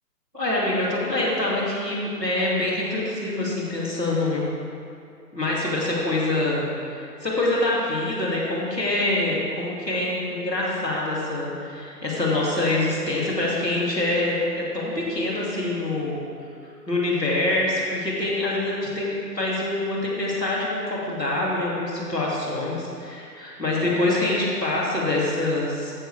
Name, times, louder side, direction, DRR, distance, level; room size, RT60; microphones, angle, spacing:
voice 1, 0.3-4.4 5.3-6.6 7.0-16.2 16.9-25.9, left 2 dB, 5° right, -17 dB, 0.5 m, -25 dB
13.0 x 7.8 x 3.4 m, 2.5 s
figure-of-eight pair, 140°, 49 cm